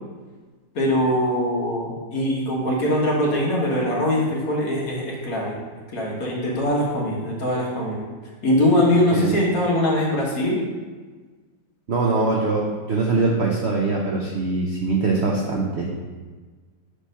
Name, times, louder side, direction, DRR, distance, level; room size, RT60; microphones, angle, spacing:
voice 1, 0.7-5.5 5.9-8.0 8.4-10.6, left 1 dB, 55° left, -3 dB, 1.7 m, -22 dB
voice 2, 11.9-15.9, right 3 dB, 70° right, -1 dB, 0.6 m, -22 dB
6.3 x 3.3 x 5.5 m, 1.4 s
omnidirectional pair, 2.0 m